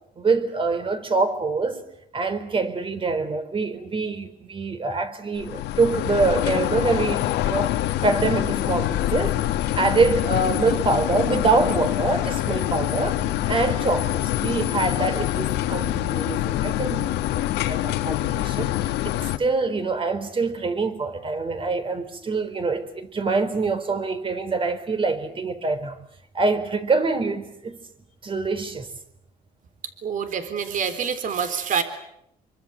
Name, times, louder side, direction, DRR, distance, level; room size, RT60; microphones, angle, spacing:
voice 1, 0.2-1.9 2.1-9.4 9.7-13.2 13.5-26.0 26.3-27.8 28.2-28.9, right 3 dB, 30° right, 4.4 m, -25 dB
sound 1, 5.4-19.4, left 14 dB, 85° left, 1.8 m, -25 dB
voice 2, 30.0-31.8, right 7 dB, 50° right, 3.9 m, -26 dB
27.5 x 24.0 x 8.1 m
cardioid pair, 110°, 17 cm